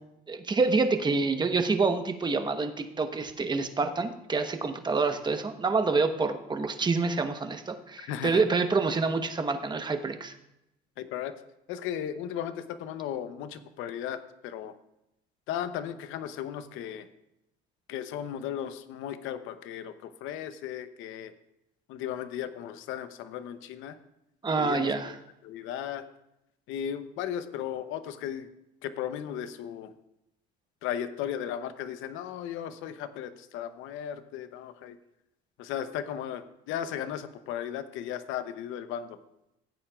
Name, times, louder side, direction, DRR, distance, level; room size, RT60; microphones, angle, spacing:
voice 1, 0.3-10.3 24.4-25.1, right 4 dB, 20° right, 7 dB, 1.0 m, -27 dB
voice 2, 8.0-8.4 11.0-11.4 11.7-14.7 15.5-17.1 17.9-21.3 21.9-24.0 24.6-25.2 25.4-26.0 26.7-28.5 28.8-29.9 30.8-35.0 35.6-39.2, left 10 dB, 75° left, 12 dB, 0.8 m, -36 dB
15.5 x 8.7 x 2.4 m, 0.86 s
cardioid pair, 100°, 20 cm